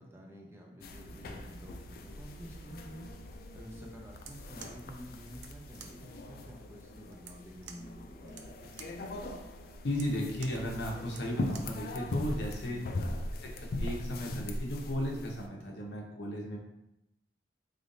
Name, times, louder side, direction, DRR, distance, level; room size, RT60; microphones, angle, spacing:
voice 1, 0.0-3.1 3.5-8.7 12.7-13.3, equal, 15° right, -1 dB, 0.5 m, -50 dB
sound 1, 0.8-15.5, left 1 dB, 55° left, 0.3 m, -40 dB
sound 2, 4.1-11.8, right 7 dB, 80° right, 0.4 m, -53 dB
voice 2, 9.8-12.9 13.4-16.6, equal, 80° left, -1 dB, 0.7 m, -35 dB
3.7 x 3.3 x 2.6 m, 0.86 s
head